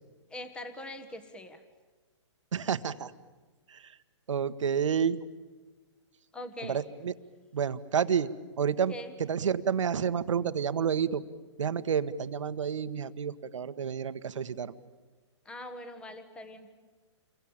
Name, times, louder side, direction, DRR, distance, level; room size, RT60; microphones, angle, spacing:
voice 1, 0.3-1.6 6.3-6.8 8.9-9.1 15.4-16.7, left 1 dB, 5° left, 11 dB, 1.4 m, -42 dB
voice 2, 2.5-3.1 3.7-4.0 4.3-5.2 6.6-7.1 7.5-8.3 8.6-8.9 9.2-11.2 11.6-14.7, right 7 dB, 80° right, 13 dB, 1.4 m, -29 dB
28.5 x 23.0 x 8.9 m, 1.4 s
hypercardioid pair, 155°, 16 cm